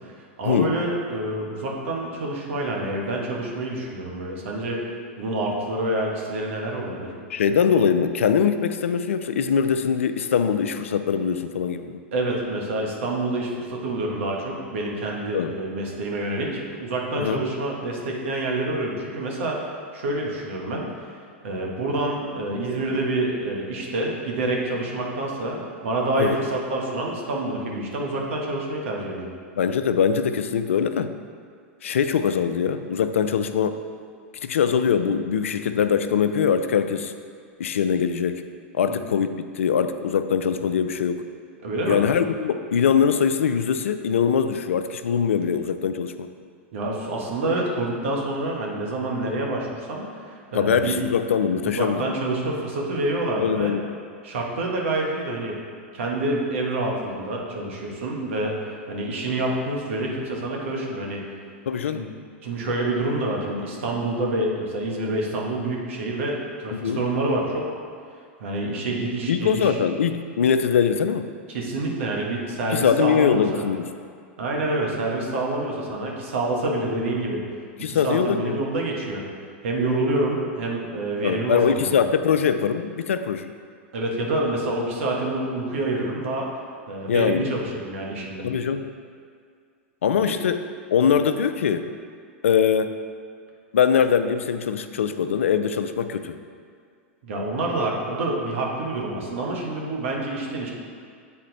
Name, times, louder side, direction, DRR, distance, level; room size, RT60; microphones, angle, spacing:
voice 1, 0.0-4.8 5.2-7.1 12.1-19.6 19.9-21.1 21.4-29.3 38.9-39.1 41.6-42.0 46.7-51.0 51.6-53.8 54.2-55.6 55.9-58.6 58.9-61.2 61.9-62.0 62.4-67.7 68.4-69.8 71.5-73.7 74.4-77.4 77.9-79.2 79.6-82.1 83.9-86.5 86.9-88.4 90.3-90.4 97.2-100.7, right 2 dB, 70° right, -1 dB, 1.4 m, -27 dB
voice 2, 7.3-12.0 15.3-15.5 17.2-17.4 26.2-26.4 29.6-31.1 31.8-33.8 34.4-37.1 37.6-38.4 38.7-41.2 41.9-46.3 50.5-52.1 53.4-53.8 61.7-62.1 66.7-67.0 69.3-71.3 72.7-73.9 77.8-78.5 81.2-83.5 87.1-87.5 88.4-88.8 90.0-90.6 90.9-91.9 92.4-93.0 93.7-96.3, left 7 dB, 85° left, 10 dB, 0.4 m, -22 dB
8.5 x 4.2 x 4.0 m, 2.1 s
hypercardioid pair, 105°, 7 cm